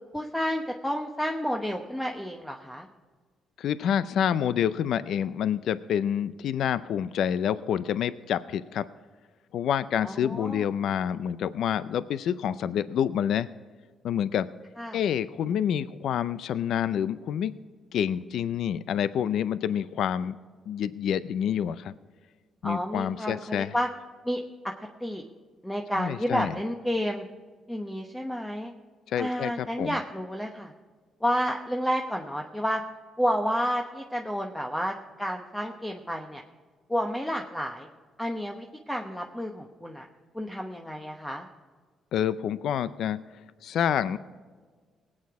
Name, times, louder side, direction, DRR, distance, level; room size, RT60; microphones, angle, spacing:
voice 1, 0.1-2.9 10.0-10.6 14.8-15.0 22.6-23.9 24.2-24.7 25.0-25.2 25.6-27.3 27.7-28.7 29.2-30.7 31.2-32.8 33.2-36.4 36.9-37.9 38.2-40.0 40.3-41.5, equal, 5° left, 3 dB, 1.0 m, -30 dB
voice 2, 3.6-8.9 9.5-13.5 14.0-14.5 14.9-17.5 17.9-20.4 20.7-21.9 22.6-23.7 26.0-26.5 29.1-30.0 42.1-43.2 43.6-44.2, left 9 dB, 75° left, 15 dB, 0.4 m, -28 dB
18.5 x 8.7 x 4.7 m, 1.5 s
cardioid pair, 90°, 0 cm